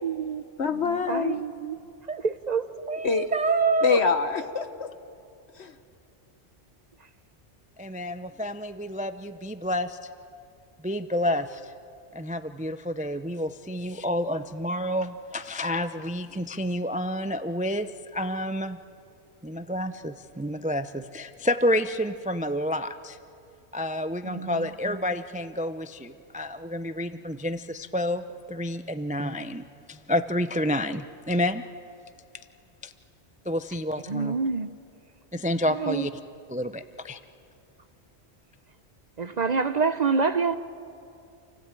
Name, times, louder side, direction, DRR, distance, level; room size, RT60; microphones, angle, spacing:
voice 1, 0.0-0.4 1.1-1.8 2.1-4.0 24.2-24.7 34.1-34.7 35.7-36.1 39.2-40.6, right 5 dB, 45° right, 11 dB, 0.8 m, -26 dB
voice 2, 0.6-1.4 3.0-3.3 3.8-4.9 5.6-5.7, left 5 dB, 70° left, 8 dB, 1.5 m, -25 dB
voice 3, 7.8-10.0 10.8-11.7 12.1-18.8 19.4-23.2 23.7-31.7 32.8-32.9 33.5-34.4 35.3-36.1 36.5-37.2, left 1 dB, 10° right, 11 dB, 0.4 m, -29 dB
28.0 x 16.0 x 9.1 m, 2.5 s
omnidirectional pair, 1.1 m